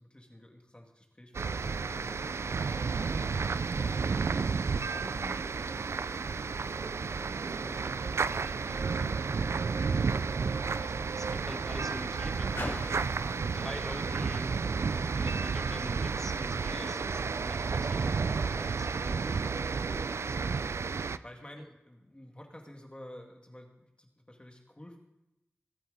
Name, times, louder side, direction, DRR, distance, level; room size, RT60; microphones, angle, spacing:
voice 1, 0.0-4.3 4.9-6.8 7.4-9.6 16.7-17.3 19.2-19.4 19.9-20.3 21.0-25.0, left 1 dB, 25° left, 1 dB, 2.2 m, -51 dB
sound 1, 1.3-21.2, right 5 dB, 80° right, 0.3 m, -32 dB
Car, 9.3-15.5 16.4-16.5, left 2 dB, 75° left, 3.7 m, -48 dB
voice 2, 9.9-13.2 13.4-14.5 14.9-17.0 17.4-19.6 21.6-21.7, equal, 5° left, 6 dB, 1.4 m, -46 dB
22.5 x 8.9 x 4.1 m, 0.91 s
wide cardioid pair, 60°, 4 cm